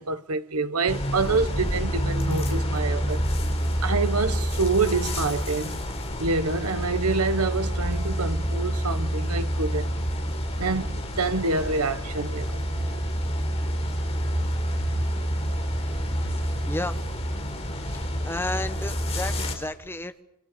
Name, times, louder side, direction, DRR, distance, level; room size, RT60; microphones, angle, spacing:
voice 1, 0.0-3.2 3.8-5.8 6.2-9.9 10.6-12.6 16.2-16.3, right 3 dB, 90° right, 1.4 m, -27 dB
sound 1, 0.9-19.5, equal, 30° left, 4.6 m, -28 dB
voice 2, 16.7-17.0 18.2-20.2, left 1 dB, 10° left, 1.1 m, -32 dB
28.5 x 25.5 x 6.8 m
head